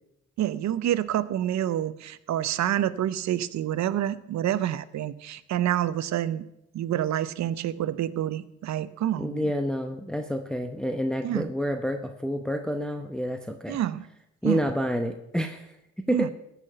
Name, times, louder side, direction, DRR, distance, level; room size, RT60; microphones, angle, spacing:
voice 1, 0.4-6.4 6.7-9.5 11.2-11.5 13.7-14.0 14.4-14.6 16.1-16.3, right 12 dB, 65° right, 16 dB, 0.7 m, -27 dB
voice 2, 9.2-13.8 14.4-16.3, equal, ahead, 5 dB, 0.8 m, -29 dB
14.5 x 5.9 x 6.7 m, 0.82 s
cardioid pair, 90°, 30 cm